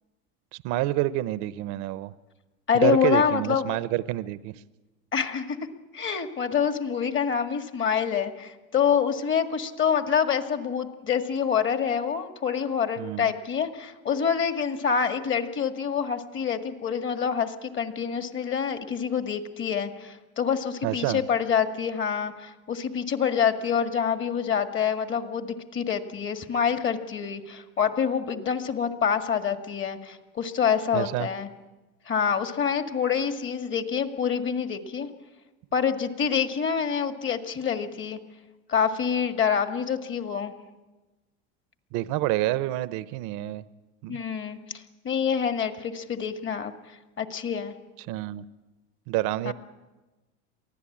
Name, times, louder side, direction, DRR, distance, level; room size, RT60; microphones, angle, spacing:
voice 1, 0.5-2.1 2.7-4.5 13.0-13.3 20.8-21.2 30.9-31.3 41.9-43.6 44.0-44.2 48.1-48.5 49.1-49.5, right 16 dB, 65° right, 16 dB, 0.8 m, -28 dB
voice 2, 2.7-3.7 5.1-5.6 5.9-31.5 32.1-35.1 35.7-38.2 38.7-40.5 44.1-47.7 49.4-49.5, left 7 dB, 35° left, 8 dB, 1.9 m, -26 dB
23.5 x 15.5 x 8.7 m, 1.2 s
supercardioid pair, 105°, 33 cm